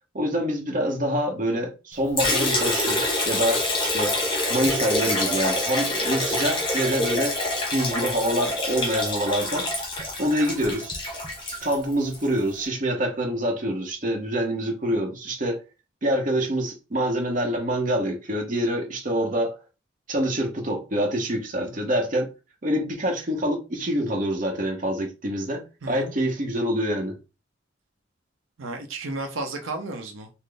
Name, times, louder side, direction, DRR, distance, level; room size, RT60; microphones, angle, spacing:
voice 1, 0.1-4.2 4.5-7.4 7.7-9.7 10.2-10.9 11.6-15.6 16.0-19.6 20.1-22.3 22.6-27.2, equal, 40° right, 0.9 m, -26 dB
Liquid, 2.2-12.3, left 1 dB, 25° left, 1.0 m, -26 dB
voice 2, 25.8-26.1 28.6-30.3, right 2 dB, 85° right, 0.6 m, -33 dB
4.0 x 2.0 x 3.3 m
head